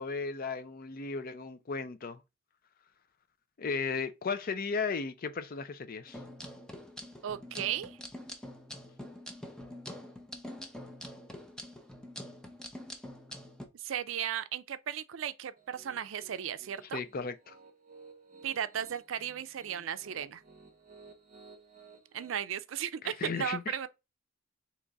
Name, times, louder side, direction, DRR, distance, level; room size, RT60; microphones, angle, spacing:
voice 1, 0.0-2.2 3.6-6.2 16.9-17.5 23.0-23.8, left 5 dB, 45° left, 0.5 m, -35 dB
sound 1, 6.1-13.7, left 1 dB, 5° left, 0.6 m, -45 dB
voice 2, 7.2-8.0 13.7-17.0 18.4-20.4 22.1-23.9, right 9 dB, 70° right, 0.4 m, -35 dB
Piano, 15.6-22.4, right 4 dB, 40° right, 0.8 m, -56 dB
3.9 x 2.9 x 3.4 m
head